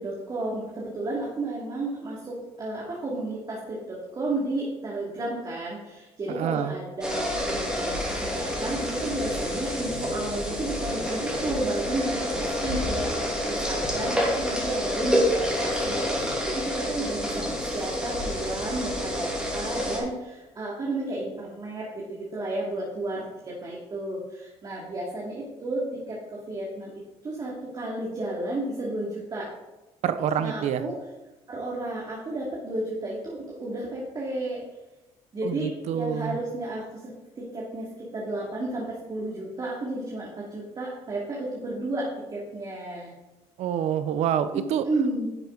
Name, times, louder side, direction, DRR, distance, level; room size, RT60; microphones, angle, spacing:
voice 1, 0.0-26.9 27.2-29.5 30.4-31.0 31.5-34.6 35.3-36.8 37.4-37.9 38.1-43.1 44.5-45.3, right 2 dB, 35° right, -5 dB, 2.6 m, -32 dB
voice 2, 6.3-6.7 30.0-30.8 35.4-36.4 43.6-44.8, right 9 dB, 70° right, 12 dB, 0.8 m, -27 dB
sound 1, 7.0-20.0, equal, 5° right, 3.1 m, -28 dB
11.0 x 7.3 x 4.0 m, 1.0 s
cardioid pair, 105°, 12 cm